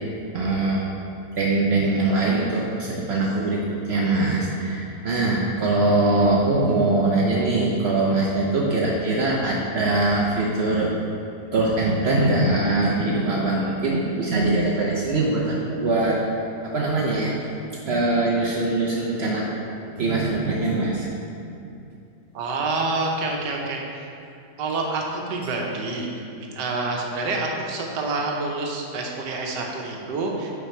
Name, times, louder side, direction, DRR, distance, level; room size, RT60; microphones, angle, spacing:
voice 1, 0.3-0.9 1.4-3.6 3.9-10.9 11.5-16.4 16.7-17.4 17.9-19.5 20.0-21.1 21.4-21.6, right 2 dB, 65° right, -4 dB, 0.6 m, -22 dB
voice 2, 22.3-24.1 24.6-30.5, right 3 dB, 90° right, 0 dB, 1.4 m, -27 dB
5.1 x 4.6 x 4.3 m, 2.6 s
omnidirectional pair, 1.8 m